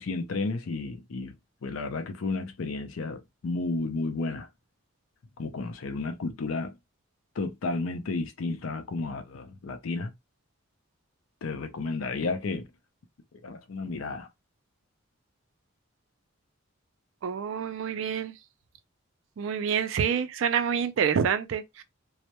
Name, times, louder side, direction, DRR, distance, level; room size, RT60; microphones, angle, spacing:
voice 1, 0.0-1.4 1.6-4.5 5.4-6.8 7.4-10.1 11.4-12.7 13.4-14.3, left 3 dB, 75° left, 0.5 m, -32 dB
voice 2, 17.2-18.3 19.4-21.8, right 7 dB, 65° right, 0.3 m, -27 dB
2.2 x 2.0 x 2.8 m
head